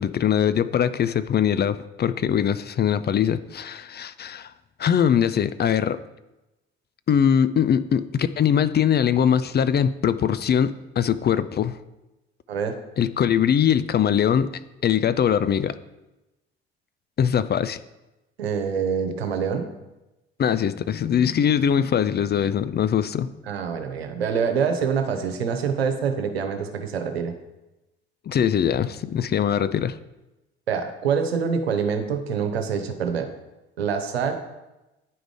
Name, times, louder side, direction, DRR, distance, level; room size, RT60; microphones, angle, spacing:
voice 1, 0.0-4.5 4.8-6.0 7.1-11.8 13.0-14.5 14.8-15.7 17.2-17.8 20.4-23.3 28.3-30.0, left 8 dB, 35° left, 13 dB, 0.5 m, -22 dB
voice 2, 18.4-19.7 23.5-27.3 30.7-33.3 33.8-34.3, right 6 dB, 80° right, 7 dB, 0.9 m, -25 dB
9.6 x 5.1 x 4.9 m, 1.0 s
figure-of-eight pair, 50°, 30 cm